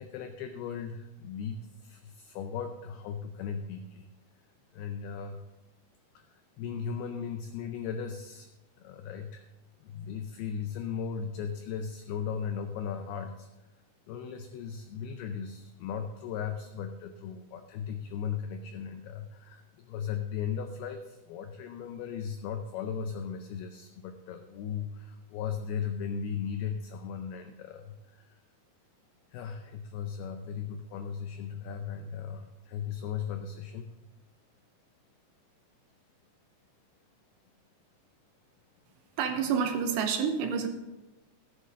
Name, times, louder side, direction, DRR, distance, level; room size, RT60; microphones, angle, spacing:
voice 1, 0.0-4.1 4.7-5.4 6.1-8.5 8.8-9.5 9.8-13.5 14.1-28.4 29.3-33.9, left 7 dB, 90° left, 7 dB, 2.2 m, -37 dB
voice 2, 39.2-40.7, right 6 dB, 75° right, 6 dB, 2.8 m, -28 dB
15.0 x 10.0 x 3.7 m, 1.0 s
omnidirectional pair, 5.3 m